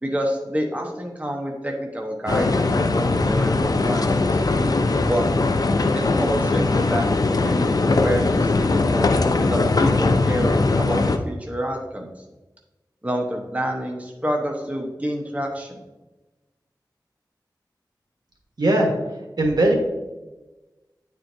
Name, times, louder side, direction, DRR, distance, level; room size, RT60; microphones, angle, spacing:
voice 1, 0.0-4.4 5.1-5.3 5.9-12.1 13.0-15.8, equal, 20° right, 0 dB, 0.9 m, -28 dB
sound 1, 2.3-11.2, left 3 dB, 55° left, 0.5 m, -20 dB
voice 2, 18.6-18.9 19.4-19.7, right 1 dB, 65° right, 0 dB, 1.3 m, -18 dB
9.5 x 4.5 x 2.6 m, 1.1 s
wide cardioid pair, 60°, 8 cm